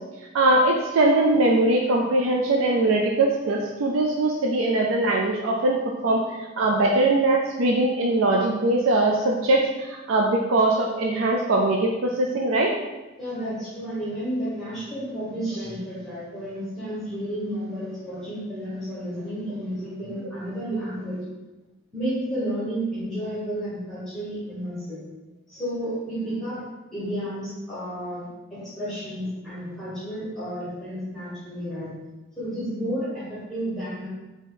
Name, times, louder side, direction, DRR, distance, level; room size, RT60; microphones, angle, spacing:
voice 1, 0.3-5.8 6.0-12.7, right 2 dB, 90° right, 0 dB, 0.5 m, -21 dB
voice 2, 13.2-21.2 21.9-25.0 25.5-26.6 26.9-31.9 32.4-34.1, equal, ahead, -10 dB, 1.3 m, -31 dB
4.1 x 3.0 x 3.8 m, 1.1 s
head